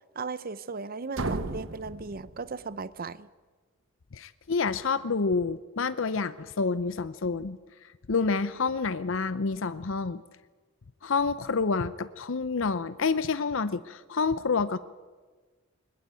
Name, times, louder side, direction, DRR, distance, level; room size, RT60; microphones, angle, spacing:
voice 1, 0.1-3.3, right 4 dB, 45° right, 16 dB, 0.7 m, -37 dB
sound 1, 1.1-3.0, right 2 dB, 65° right, 1.4 m, -35 dB
voice 2, 4.1-7.6 8.1-10.2 11.0-14.8, left 4 dB, 65° left, 13 dB, 0.7 m, -28 dB
21.0 x 20.5 x 9.0 m, 1.4 s
head